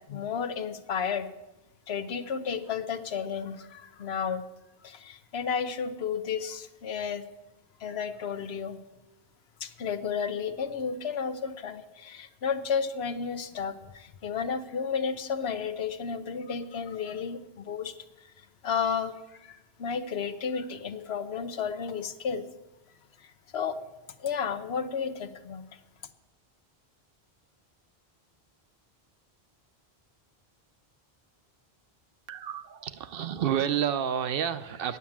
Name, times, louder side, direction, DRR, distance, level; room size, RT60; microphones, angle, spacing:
voice 1, 0.1-1.3 1.9-4.4 4.8-7.2 7.8-8.8 9.6-17.9 18.6-22.4 23.5-23.8 24.2-25.6, left 6 dB, 80° left, 10 dB, 1.0 m, -32 dB
voice 2, 32.3-35.0, right 9 dB, 65° right, 12 dB, 0.8 m, -30 dB
9.6 x 8.8 x 7.2 m, 1.0 s
omnidirectional pair, 1.1 m